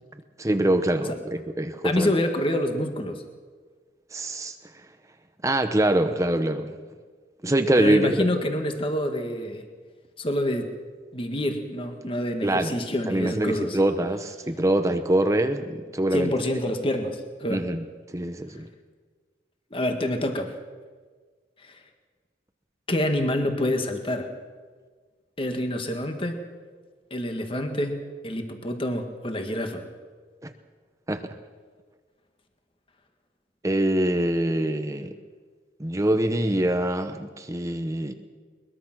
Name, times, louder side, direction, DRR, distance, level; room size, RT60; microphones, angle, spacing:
voice 1, 0.4-2.1 4.1-4.6 5.4-6.7 7.4-8.1 12.4-12.8 13.1-16.3 17.5-17.8 18.1-18.7 30.4-30.5 31.1-31.3 33.6-35.1 35.8-38.1, right 1 dB, 20° right, 8 dB, 0.9 m, -24 dB
voice 2, 1.8-3.2 7.8-9.7 10.2-10.7 11.1-13.8 16.1-17.6 19.7-20.5 21.6-21.8 22.9-24.3 25.4-26.4 27.1-29.8, left 1 dB, 30° left, 6 dB, 1.8 m, -27 dB
22.0 x 21.5 x 6.1 m, 1.5 s
head